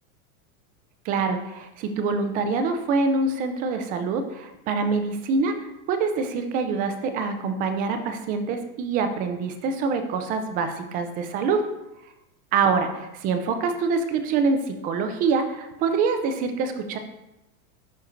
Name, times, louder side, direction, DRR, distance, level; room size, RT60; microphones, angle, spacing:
voice 1, 1.0-11.6 12.5-17.0, right 4 dB, 20° right, 7 dB, 0.4 m, -25 dB
11.5 x 4.2 x 2.6 m, 0.91 s
supercardioid pair, 140°, 44 cm